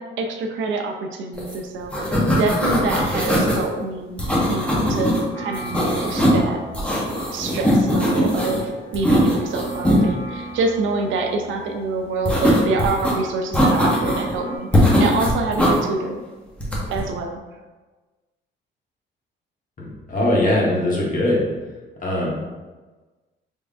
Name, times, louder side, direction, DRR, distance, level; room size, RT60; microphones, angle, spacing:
voice 1, 0.0-4.2 4.5-6.6 7.3-16.2 16.9-17.4, right 3 dB, 80° right, 4 dB, 0.5 m, -26 dB
sound 1, 1.4-1.6 1.8-3.6 4.2-5.2 5.5-6.4 6.7-8.6 8.9-10.0 12.3-13.1 13.5-14.3 14.7-15.8 16.6-17.0, equal, 5° left, 0.9 m, -20 dB
sound 2, 5.3-14.6, right 1 dB, 75° left, 1.0 m, -38 dB
voice 2, 19.8-21.4 22.0-22.3, left 1 dB, 40° left, -4 dB, 1.3 m, -21 dB
3.5 x 3.1 x 2.5 m, 1.3 s
cardioid pair, 90°, 20 cm